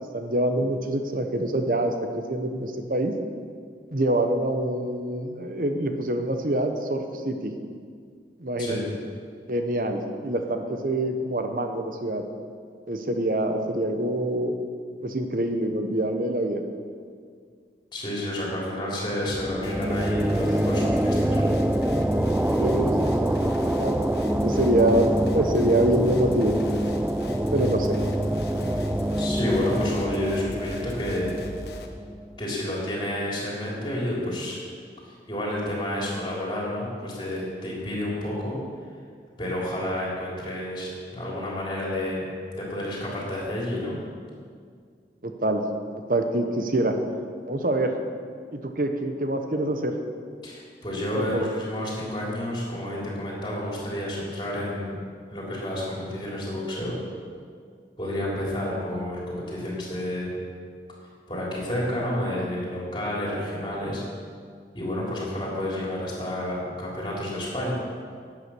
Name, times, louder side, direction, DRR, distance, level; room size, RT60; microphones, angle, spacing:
voice 1, 0.1-3.1 3.9-7.5 8.4-8.8 9.5-12.2 12.9-14.5 15.0-16.6 22.6-23.0 23.2-23.5 23.8-24.0 24.4-26.6 27.5-28.0 45.2-45.6 46.1-47.0 47.5-47.9 48.5-50.0 51.1-51.4, right 1 dB, 50° right, 5 dB, 1.0 m, -25 dB
voice 2, 17.9-21.5 23.4-23.5 29.2-31.3 32.4-34.6 35.0-38.6 39.4-42.3 42.5-43.9 50.4-55.0 55.3-56.9 58.0-60.3 61.3-64.0 64.7-67.7, left 1 dB, 25° left, -5 dB, 3.4 m, -30 dB
sound 1, 19.3-32.7, right 1 dB, 5° right, 0.3 m, -26 dB
sound 2, 19.6-31.9, left 1 dB, 70° left, 1.0 m, -39 dB
12.0 x 8.4 x 6.2 m, 2.1 s
head